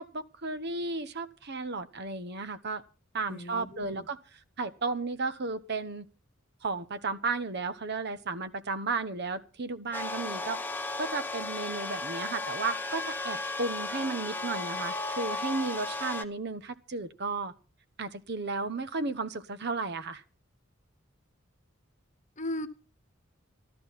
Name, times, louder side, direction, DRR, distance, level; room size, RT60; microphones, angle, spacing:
voice 1, 0.0-2.8 3.1-6.1 6.6-10.6 11.0-17.5 18.0-20.2, right 3 dB, 55° right, 1.1 m, -34 dB
voice 2, 3.3-4.1 22.4-22.7, left 1 dB, 40° left, 1.2 m, -37 dB
sound 1, 9.9-16.2, left 2 dB, 10° left, 1.0 m, -35 dB
14.0 x 13.0 x 5.8 m
head